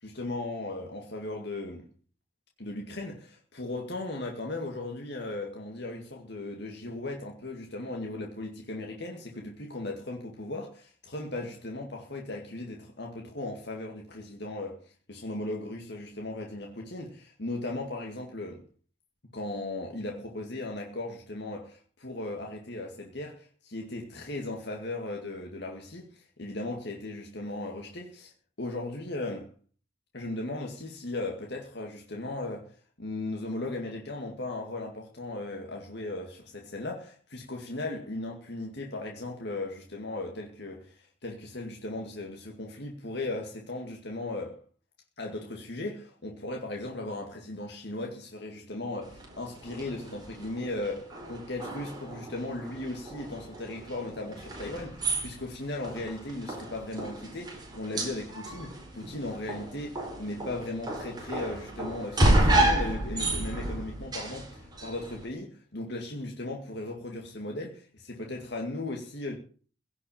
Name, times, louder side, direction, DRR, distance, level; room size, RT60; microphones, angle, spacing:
voice 1, 0.0-1.9 2.6-18.6 19.3-28.3 28.6-29.5 30.1-44.6 45.2-69.4, left 2 dB, 55° left, 2.2 m, -37 dB
sound 1, 49.0-65.3, right 1 dB, 20° right, 4.6 m, -31 dB
16.5 x 6.3 x 8.7 m
head